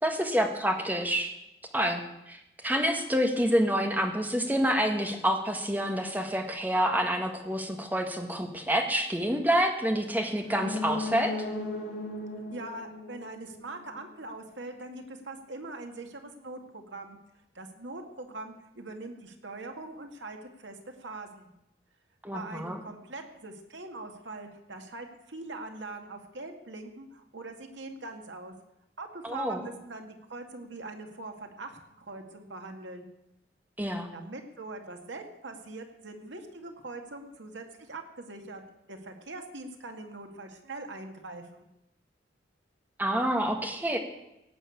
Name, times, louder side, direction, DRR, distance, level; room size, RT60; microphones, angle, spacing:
voice 1, 0.0-1.3 1.7-2.0 2.3-11.3 22.2-22.8 29.2-29.7 33.8-34.1 43.0-44.0, equal, 10° right, 4 dB, 1.6 m, -28 dB
sound 1, 10.4-14.1 14.4-14.5, left 2 dB, 65° left, 2.4 m, -37 dB
voice 2, 12.5-17.2 17.5-21.5 22.3-28.5 29.0-33.1 34.1-38.6 38.9-41.7, right 2 dB, 85° right, 4 dB, 2.0 m, -42 dB
17.0 x 6.9 x 8.4 m, 0.89 s
head